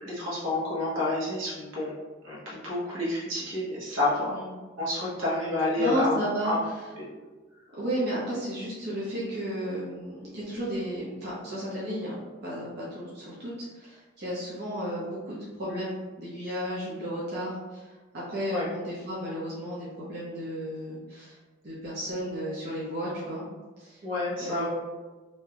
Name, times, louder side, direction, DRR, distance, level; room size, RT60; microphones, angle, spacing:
voice 1, 0.0-1.9 2.2-4.4 4.8-6.2 6.4-6.6 7.0-7.1 18.5-18.7 24.0-24.7, left 2 dB, 90° right, -6 dB, 1.1 m, -29 dB
voice 2, 5.8-6.5 7.8-21.4 21.6-23.4 23.8-24.0 24.4-24.7, equal, 60° right, -8 dB, 0.7 m, -33 dB
2.7 x 2.3 x 3.3 m, 1.3 s
head